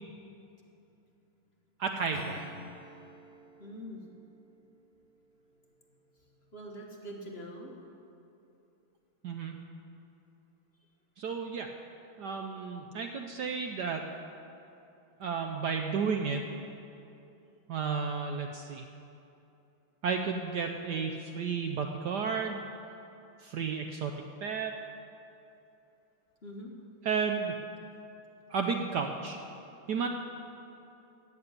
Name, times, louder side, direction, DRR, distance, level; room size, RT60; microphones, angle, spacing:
voice 1, 1.8-2.5 9.2-9.5 11.2-11.7 12.2-14.0 15.2-16.4 17.7-18.8 20.0-22.6 23.4-24.2 24.4-24.8 27.0-27.5 28.5-29.4 29.9-30.1, right 5 dB, 65° right, 4 dB, 1.1 m, -32 dB
Acoustic guitar / Strum, 2.1-6.4, left 1 dB, 60° left, 1.8 m, -51 dB
voice 2, 3.6-4.0 6.5-7.7 26.4-26.7 30.0-30.1, equal, 35° left, -1 dB, 1.4 m, -43 dB
15.5 x 6.9 x 9.7 m, 2.8 s
omnidirectional pair, 2.3 m